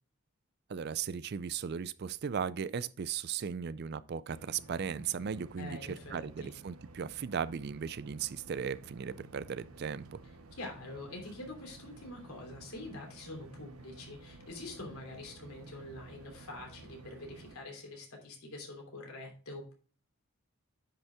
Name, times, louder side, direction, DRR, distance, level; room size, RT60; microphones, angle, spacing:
voice 1, 0.7-10.2, right 7 dB, 50° right, 0.4 m, -37 dB
sound 1, 4.3-17.6, right 2 dB, 85° right, 0.9 m, -53 dB
voice 2, 5.6-6.5 10.5-19.7, left 2 dB, 90° left, 3.0 m, -45 dB
10.0 x 5.5 x 3.5 m
head